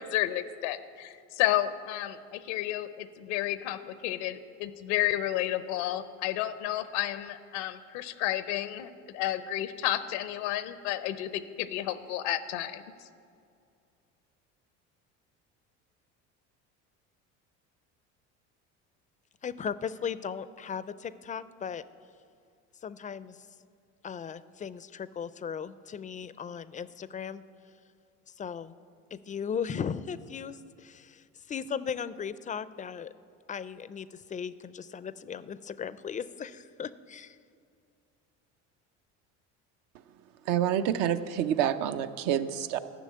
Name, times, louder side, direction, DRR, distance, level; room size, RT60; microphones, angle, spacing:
voice 1, 0.0-12.8, left 13 dB, 85° left, 13 dB, 0.7 m, -31 dB
voice 2, 19.4-21.8 22.8-23.4 24.0-27.4 28.4-28.7 29.1-33.1 33.5-37.4, left 7 dB, 25° left, 16 dB, 0.4 m, -37 dB
voice 3, 40.5-42.8, right 10 dB, 70° right, 10 dB, 0.7 m, -27 dB
12.0 x 6.2 x 8.5 m, 2.4 s
supercardioid pair, 90°, 35 cm